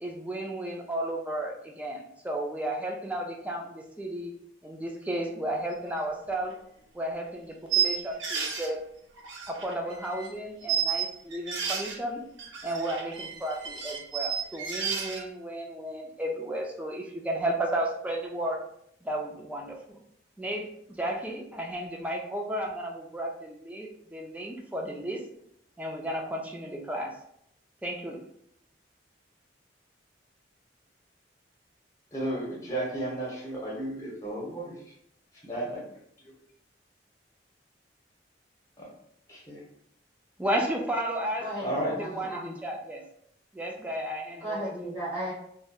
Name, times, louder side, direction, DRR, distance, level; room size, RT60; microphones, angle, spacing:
voice 1, 0.0-4.3 4.6-6.5 6.9-8.8 9.5-12.2 12.6-18.6 19.0-20.0 20.4-25.2 25.8-27.2 27.8-28.2 40.4-43.0 43.5-44.6, right 1 dB, 10° right, 0 dB, 0.3 m, -33 dB
sound 1, 6.0-6.1 6.5-6.6 7.7-8.7 9.2-10.3 10.6-12.0 12.4-15.2, right 8 dB, 80° right, 0.5 m, -31 dB
voice 2, 32.1-34.7 35.4-35.8 38.8-38.9 39.3-39.6 41.6-42.3, right 1 dB, 15° left, -5 dB, 0.8 m, -33 dB
voice 3, 41.4-42.5 44.4-45.3, right 1 dB, 40° right, -12 dB, 0.9 m, -35 dB
2.7 x 2.1 x 2.2 m, 0.71 s
head